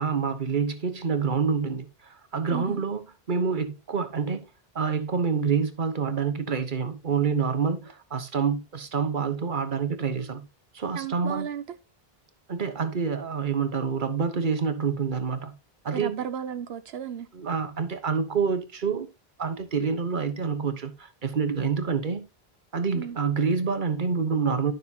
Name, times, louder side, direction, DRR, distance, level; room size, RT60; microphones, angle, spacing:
voice 1, 0.0-4.4 4.7-10.4 10.7-11.5 12.5-15.5 15.8-16.1 17.3-19.1 19.4-22.2 22.7-24.7, right 5 dB, 50° right, 1.4 m, -27 dB
voice 2, 2.5-2.8 10.9-11.8 15.9-17.3 22.9-23.2, right 8 dB, 80° right, 1.0 m, -34 dB
12.5 x 6.5 x 2.8 m
omnidirectional pair, 1.0 m